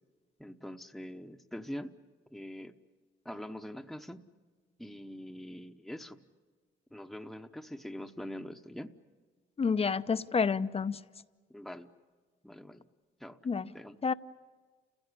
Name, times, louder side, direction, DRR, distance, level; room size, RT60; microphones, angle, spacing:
voice 1, 0.4-2.0 2.3-2.7 3.2-4.2 4.8-6.2 6.9-8.9 11.5-11.9 12.4-12.8 13.2-13.4 13.7-14.0, equal, ahead, 1.0 m, -43 dB
voice 2, 9.6-11.0 13.4-13.7 14.0-14.1, left 5 dB, 30° left, 0.7 m, -29 dB
29.5 x 16.0 x 9.9 m
cardioid pair, 90°, 20 cm